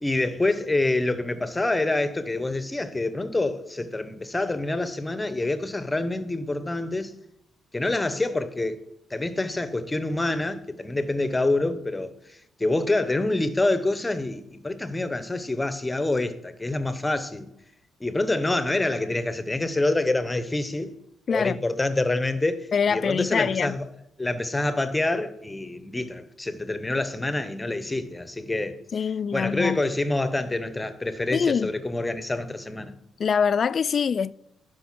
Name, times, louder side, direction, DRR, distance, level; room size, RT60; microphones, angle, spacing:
voice 1, 0.0-7.1 7.7-8.8 9.1-17.5 18.0-20.9 21.3-23.9 24.2-28.8 29.3-32.9, left 2 dB, 15° left, 0.9 m, -26 dB
voice 2, 21.3-21.6 22.7-23.8 28.9-29.8 31.3-31.7 33.2-34.3, left 6 dB, 45° left, 0.3 m, -24 dB
11.5 x 5.2 x 6.1 m
cardioid pair, 90°, 0 cm